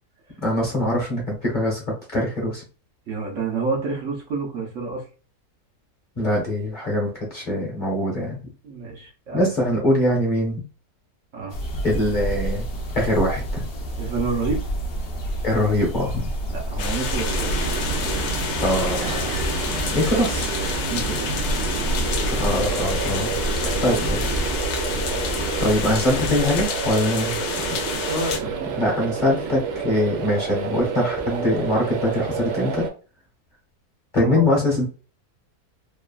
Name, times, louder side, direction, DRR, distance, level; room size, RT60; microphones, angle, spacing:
voice 1, 0.4-1.8 2.1-2.6 6.2-8.4 9.3-10.6 11.8-12.6 12.9-13.6 15.4-16.2 18.6-19.4 19.9-20.5 22.3-23.4 23.8-24.3 25.6-27.4 28.8-32.8 34.1-34.8, left 1 dB, 35° left, -3 dB, 1.0 m, -23 dB
voice 2, 3.1-5.0 8.6-9.5 9.8-9.9 11.3-11.5 14.0-14.7 16.5-17.6 19.7-20.0 20.9-21.3 23.5-24.3 28.1-28.8 34.2-34.5, right 4 dB, 60° right, -1 dB, 1.0 m, -29 dB
sound 1, 11.5-26.7, right 1 dB, 55° left, 0.7 m, -29 dB
sound 2, 16.8-28.4, left 5 dB, 75° left, 1.0 m, -29 dB
sound 3, 17.2-32.9, right 6 dB, 90° right, 1.2 m, -30 dB
3.0 x 2.3 x 2.3 m, 0.35 s
omnidirectional pair, 1.6 m